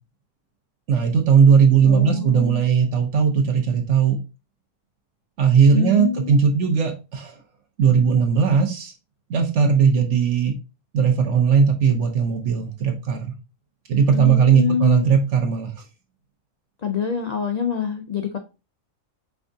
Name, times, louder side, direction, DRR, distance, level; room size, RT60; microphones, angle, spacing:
voice 1, 0.9-4.2 5.4-7.4 7.8-8.9 9.3-10.5 10.9-13.2 13.9-15.7, right 6 dB, 65° right, 1.0 m, -18 dB
voice 2, 1.8-2.6 5.7-6.3 14.1-15.1 16.8-18.4, left 7 dB, 80° left, 0.3 m, -26 dB
4.7 x 3.4 x 2.6 m
omnidirectional pair, 1.4 m